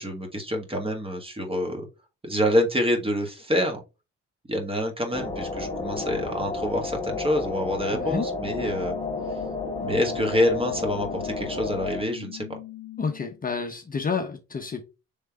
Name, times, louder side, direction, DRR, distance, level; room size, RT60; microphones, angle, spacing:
voice 1, 0.0-1.9 2.2-3.8 4.5-8.9 9.8-12.6, equal, 20° right, 4 dB, 1.5 m, -27 dB
sound 1, 5.1-12.0, left 3 dB, 15° left, 1.4 m, -32 dB
voice 2, 7.9-8.3 13.0-14.8, left 5 dB, 30° left, 5 dB, 0.7 m, -29 dB
sound 2, 8.4-13.4, left 16 dB, 60° left, 0.8 m, -41 dB
3.7 x 3.3 x 4.4 m, 0.28 s
cardioid pair, 90°, 30 cm